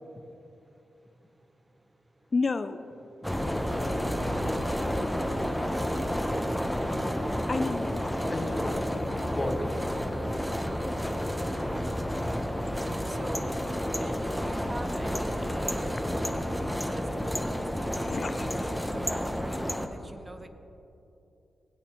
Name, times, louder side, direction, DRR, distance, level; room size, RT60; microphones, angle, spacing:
voice 1, 0.0-2.3 10.1-16.1 16.5-20.5, right 2 dB, 30° right, 8 dB, 0.8 m, -48 dB
voice 2, 2.3-2.9 7.5-8.5 18.0-18.7, left 4 dB, 50° left, 10 dB, 0.4 m, -32 dB
sound 1, 3.2-19.9, equal, 5° left, 0.9 m, -30 dB
voice 3, 3.5-4.1 8.3-9.7 10.4-10.8, left 2 dB, 30° left, 3 dB, 1.4 m, -37 dB
16.5 x 8.6 x 3.1 m, 2.8 s
supercardioid pair, 40°, 0 cm